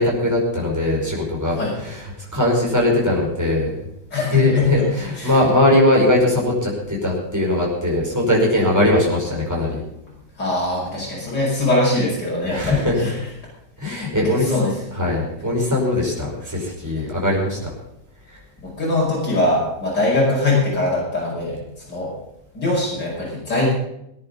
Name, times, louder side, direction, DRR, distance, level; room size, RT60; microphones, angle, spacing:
voice 1, 0.0-3.7 4.3-9.8 12.5-13.1 13.8-14.5 14.9-17.7 18.3-18.4, left 1 dB, 10° right, -3 dB, 5.2 m, -20 dB
voice 2, 4.1-4.9 5.2-5.3 10.4-13.1 14.2-14.7 18.8-21.6 21.9-22.1 22.5-23.7, left 2 dB, 80° left, -6 dB, 6.2 m, -21 dB
19.5 x 10.5 x 5.4 m, 0.82 s
omnidirectional pair, 1.9 m